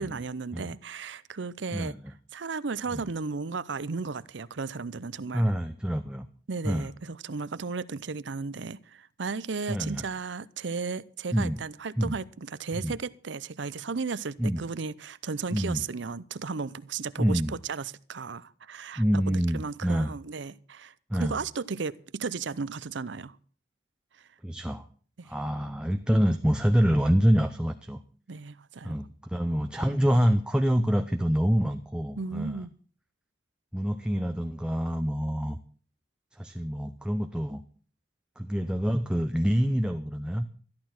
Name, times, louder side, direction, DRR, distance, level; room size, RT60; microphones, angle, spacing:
voice 1, 0.0-1.9 2.3-5.4 6.5-20.9 21.2-23.4 25.2-25.3 28.3-29.0 32.2-32.7, right 4 dB, 80° right, 0.7 m, -35 dB
voice 2, 5.3-6.3 6.6-6.9 9.7-10.0 11.3-11.6 12.0-12.2 12.7-12.9 14.4-14.6 15.5-15.8 17.2-17.6 19.0-20.1 21.1-21.4 24.4-24.8 25.2-28.0 28.8-32.7 33.7-35.6 36.3-37.6 38.4-40.5, equal, 5° right, 0.6 m, -26 dB
13.5 x 11.5 x 6.0 m
head